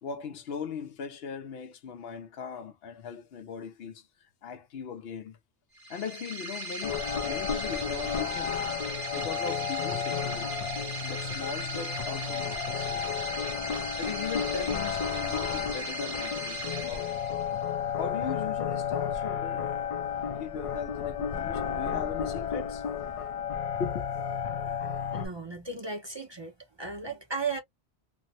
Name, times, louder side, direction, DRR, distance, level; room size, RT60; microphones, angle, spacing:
voice 1, 0.0-4.1 4.4-5.4 5.9-8.6 9.2-10.6 11.0-13.2 14.0-17.1 18.0-19.7 20.4-22.8 23.8-24.4, left 6 dB, 75° left, 0.8 m, -39 dB
sound 1, 5.7-17.7, right 1 dB, 55° right, 1.3 m, -38 dB
sound 2, 6.8-25.3, left 7 dB, 55° left, 0.4 m, -32 dB
voice 2, 25.1-27.6, right 4 dB, 30° right, 0.6 m, -35 dB
3.3 x 2.0 x 2.7 m
omnidirectional pair, 1.0 m